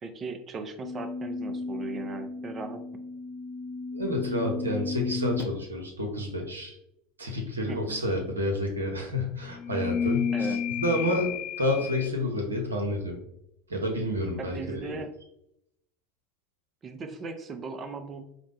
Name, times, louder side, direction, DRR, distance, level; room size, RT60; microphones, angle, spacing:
voice 1, 0.0-2.8 7.7-8.0 10.3-10.6 14.4-15.1 16.8-18.2, right 4 dB, 30° right, 8 dB, 0.5 m, -38 dB
sound 1, 0.8-5.7 9.5-12.1, left 5 dB, 40° left, 0.4 m, -33 dB
voice 2, 3.9-6.8 7.2-13.2 13.7-15.0, left 1 dB, 80° right, 2 dB, 0.7 m, -29 dB
4.8 x 2.1 x 3.3 m, 0.78 s
figure-of-eight pair, 75°, 0 cm